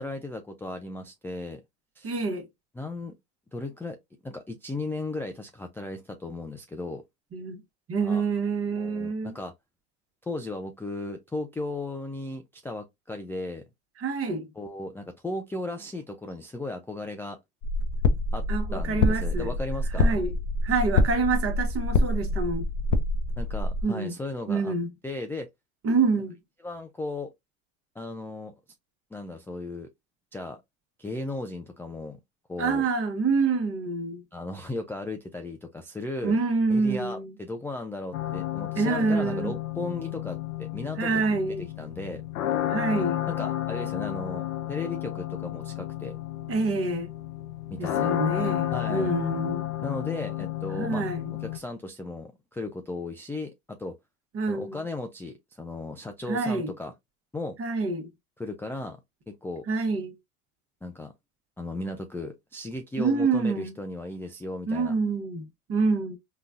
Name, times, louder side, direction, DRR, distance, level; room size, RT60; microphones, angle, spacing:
voice 1, 0.0-1.6 2.0-2.1 2.8-3.1 3.5-4.0 4.2-7.0 8.0-8.2 8.8-9.5 10.2-13.6 14.6-17.4 18.3-20.2 23.4-24.7 25.0-25.5 26.6-27.3 28.0-28.5 29.1-29.9 30.3-30.6 31.0-32.2 32.5-32.8 34.3-36.4 36.7-41.2 41.8-42.2 43.3-46.1 47.7-48.1 48.7-49.1 49.8-51.0 51.4-53.9 54.5-56.9 57.3-57.6 58.4-59.0 59.3-59.6 60.8-61.1 61.6-64.9, left 2 dB, 5° left, 0.4 m, -36 dB
voice 2, 2.0-2.4 7.3-7.6 7.9-9.3 14.0-14.5 18.5-19.5 20.0-20.3 20.6-22.7 23.8-24.1 24.5-24.9 25.8-26.4 32.6-34.2 36.2-37.3 38.7-39.6 41.0-41.7 42.7-43.2 46.5-47.1 47.8-49.7 50.7-51.3 54.3-54.8 56.3-56.7 57.6-58.1 59.7-60.1 63.0-63.7 64.7-66.2, right 4 dB, 35° right, 1.1 m, -27 dB
sound 1, 17.6-23.8, left 2 dB, 50° left, 0.7 m, -26 dB
sound 2, 38.1-51.6, left 13 dB, 85° left, 0.6 m, -32 dB
3.8 x 2.2 x 2.5 m
hypercardioid pair, 90°, 39 cm